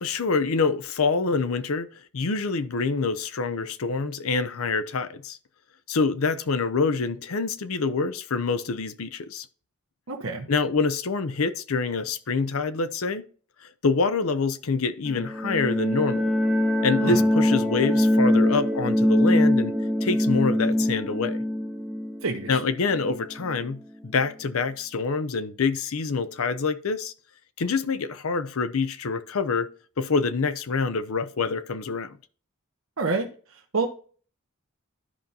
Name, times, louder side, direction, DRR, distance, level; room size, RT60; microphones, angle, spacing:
voice 1, 0.0-1.9 2.1-5.4 5.9-9.5 10.5-13.2 13.6-16.3 16.8-19.8 20.0-21.4 22.5-27.1 27.6-29.7 30.0-32.2, left 4 dB, 70° left, 0.6 m, -26 dB
voice 2, 10.1-10.5 17.0-17.2 22.2-22.6 33.0-33.9, right 3 dB, 70° right, 1.0 m, -28 dB
sound 1, 15.0-23.6, left 1 dB, ahead, 0.7 m, -23 dB
12.5 x 5.3 x 2.8 m
head